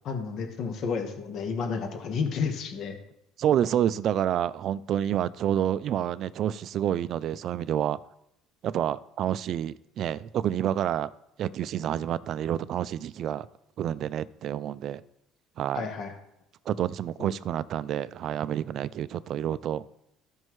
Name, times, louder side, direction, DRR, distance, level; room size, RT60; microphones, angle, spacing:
voice 1, 0.0-3.0 15.7-16.1 17.2-17.3, left 5 dB, 50° left, 1.3 m, -31 dB
voice 2, 3.4-8.0 8.6-11.1 11.4-13.5 13.8-15.0 15.6-15.9 16.7-19.9, right 10 dB, 50° right, 0.3 m, -28 dB
14.5 x 5.3 x 3.1 m
cardioid pair, 130°, 0 cm